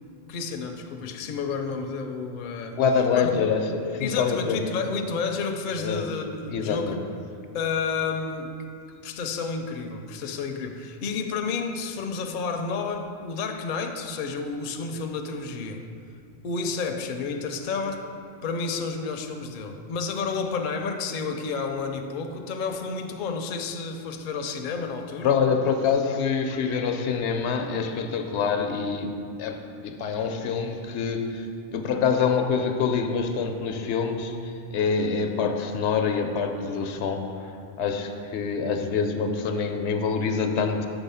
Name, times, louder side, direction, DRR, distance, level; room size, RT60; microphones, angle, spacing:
voice 1, 0.3-2.8 3.1-3.5 4.0-7.0 7.5-8.5 9.0-15.8 16.4-18.1 18.4-25.3, left 4 dB, 55° left, 5 dB, 0.6 m, -30 dB
voice 2, 2.7-4.6 5.8-6.1 6.5-7.0 25.2-31.5 31.7-37.4 37.8-40.9, left 5 dB, 85° left, 5 dB, 0.9 m, -26 dB
7.0 x 3.9 x 5.5 m, 2.4 s
omnidirectional pair, 1.1 m